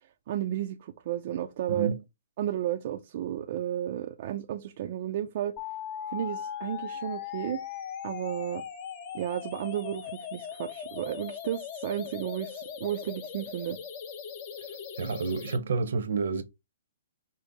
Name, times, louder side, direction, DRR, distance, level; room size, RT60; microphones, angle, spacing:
voice 1, 0.3-1.9 2.4-5.6 6.1-7.6 8.0-8.6 9.1-13.8, right 11 dB, 45° right, 0.4 m, -33 dB
sound 1, 5.6-15.6, left 8 dB, 35° left, 0.7 m, -39 dB
voice 2, 15.0-16.4, right 4 dB, 70° right, 0.8 m, -29 dB
5.2 x 2.0 x 3.9 m
hypercardioid pair, 150°, 0 cm